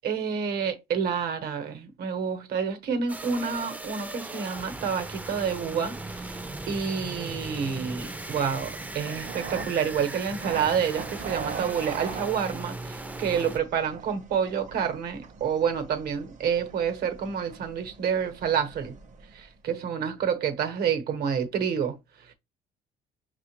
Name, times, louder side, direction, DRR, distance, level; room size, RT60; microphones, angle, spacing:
voice 1, 0.0-6.4 6.7-18.9 19.3-22.0, right 7 dB, 70° right, 1.0 m, -28 dB
sound 1, 3.1-13.6, right 2 dB, 10° right, 0.4 m, -38 dB
sound 2, 5.6-19.5, right 6 dB, 45° right, 0.7 m, -42 dB
5.7 x 2.4 x 2.9 m
cardioid pair, 110°, 17 cm